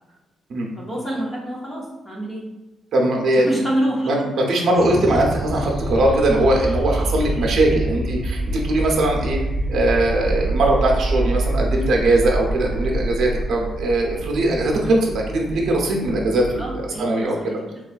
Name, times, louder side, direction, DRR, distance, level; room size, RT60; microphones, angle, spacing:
voice 1, 0.8-2.5 3.4-4.3 16.5-17.7, right 1 dB, 25° left, -4 dB, 0.7 m, -27 dB
voice 2, 2.9-3.5 4.0-9.4 9.7-16.6 17.0-17.6, right 1 dB, 60° right, 0 dB, 0.7 m, -20 dB
sound 1, 4.7-15.4, right 1 dB, 5° left, 1.0 m, -25 dB
sound 2, 8.0-17.0, right 4 dB, 20° right, 0.4 m, -35 dB
4.1 x 2.3 x 2.4 m, 1.1 s
cardioid pair, 150°, 0 cm